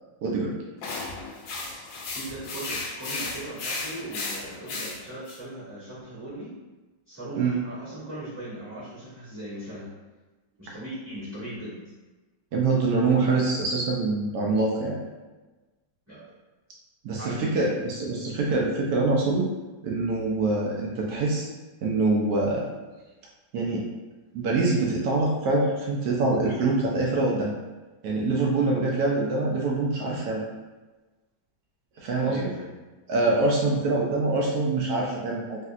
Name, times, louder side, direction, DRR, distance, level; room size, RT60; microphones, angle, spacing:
voice 1, 0.2-0.5 7.4-7.5 12.5-15.0 17.0-19.5 19.8-21.4 21.8-22.7 23.5-23.8 24.3-27.5 28.0-30.4 32.0-32.5 33.1-35.6, right 3 dB, 80° right, -2 dB, 0.8 m, -24 dB
sound 1, 0.8-5.4, left 3 dB, 75° left, 1.2 m, -34 dB
voice 2, 2.1-6.6 7.1-9.9 10.6-11.8 16.1-16.2 17.2-17.6 32.2-32.7, right 1 dB, 10° right, -14 dB, 1.0 m, -38 dB
3.2 x 2.7 x 2.3 m, 1.2 s
omnidirectional pair, 2.2 m